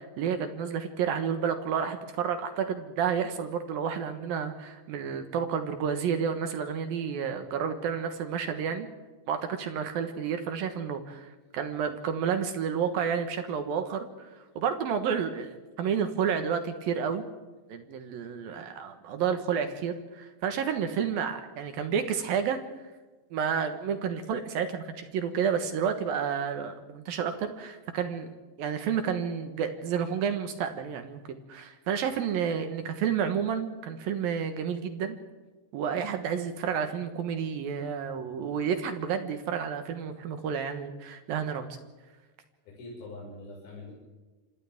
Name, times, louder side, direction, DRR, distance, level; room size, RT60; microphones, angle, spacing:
voice 1, 0.0-8.9 9.3-17.2 17.7-22.6 23.3-35.2 35.7-41.8, right 7 dB, 65° right, 7 dB, 2.6 m, -30 dB
voice 2, 42.6-43.9, left 2 dB, 55° left, -4 dB, 7.3 m, -43 dB
27.0 x 26.5 x 3.6 m, 1.3 s
omnidirectional pair, 5.4 m